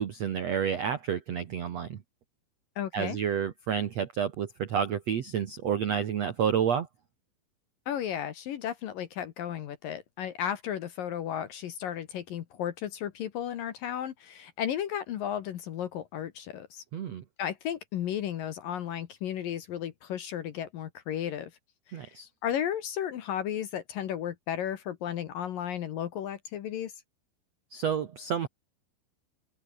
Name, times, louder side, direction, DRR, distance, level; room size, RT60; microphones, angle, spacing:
voice 1, 0.0-2.0 2.9-6.9 16.9-17.2 21.9-22.3 27.7-28.5, right 8 dB, 75° right, 1.5 m, -30 dB
voice 2, 2.8-3.2 7.9-16.8 17.4-21.5 21.9-22.1 22.4-26.9, left 10 dB, 65° left, 2.5 m, -34 dB
open air
omnidirectional pair, 5.3 m